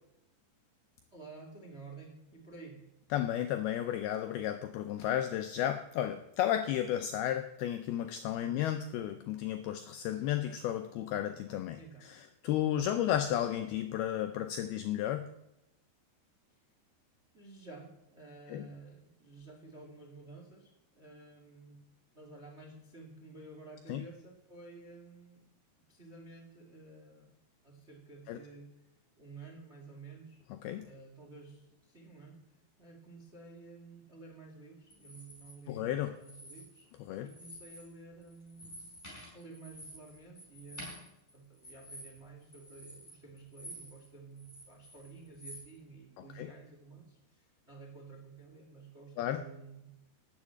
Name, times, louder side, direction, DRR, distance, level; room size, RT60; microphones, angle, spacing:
voice 1, 1.1-2.8 8.3-8.6 11.8-12.1 16.5-16.6 17.3-20.7 20.9-21.8 22.1-25.4 25.9-27.4 27.6-28.7 29.2-30.4 30.8-32.4 32.8-36.9 37.2-39.0 39.3-49.9, right 3 dB, 40° right, 2 dB, 0.9 m, -52 dB
voice 2, 3.1-15.3 18.5-18.6 23.9-24.0 28.3-28.4 30.6-30.9 35.7-36.2 37.0-37.3 46.4-46.5 49.2-49.4, left 11 dB, 85° left, 8 dB, 2.2 m, -33 dB
sound 1, 34.9-35.5 36.2-37.0 37.3-37.9 38.2-44.1 44.4-45.7, equal, 10° left, 5.1 m, -50 dB
12.0 x 7.4 x 8.5 m, 0.87 s
omnidirectional pair, 5.2 m